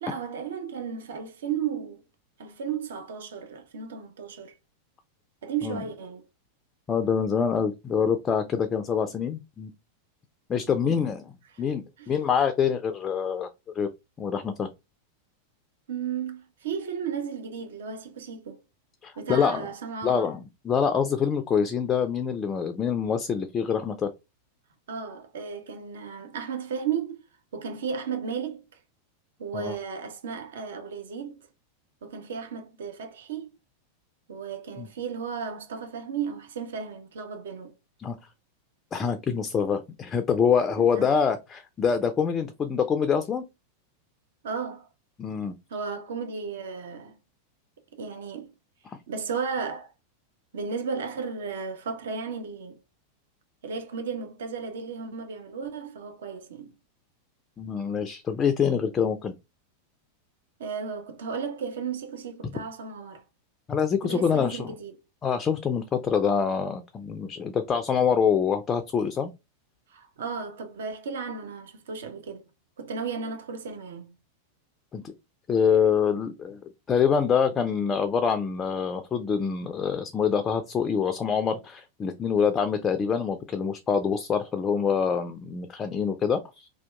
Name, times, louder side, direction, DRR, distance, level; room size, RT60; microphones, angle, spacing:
voice 1, 0.0-2.0 2.4-4.5 5.4-6.3 10.7-11.0 11.5-11.6 12.0-12.1 15.9-18.6 19.2-20.3 24.9-27.2 27.5-28.7 29.4-31.5 32.0-33.5 34.3-37.7 40.8-41.2 44.4-44.9 45.7-47.2 48.0-48.5 49.1-49.9 50.5-52.8 53.6-56.7 60.6-63.2 64.0-65.0 69.9-72.5 72.8-74.1, right 6 dB, 60° right, 0.5 m, -34 dB
voice 2, 6.9-9.7 10.5-11.2 11.6-13.5 13.8-13.9 14.2-14.7 19.0-19.7 20.0-24.1 29.5-29.8 34.8-34.9 38.0-38.2 38.9-43.4 45.2-45.6 57.6-59.3 63.7-64.7 65.2-69.3 74.9-75.1 75.5-76.6 76.9-86.7, left 6 dB, 20° left, 0.3 m, -25 dB
2.7 x 2.2 x 2.2 m
figure-of-eight pair, 90°, 0 cm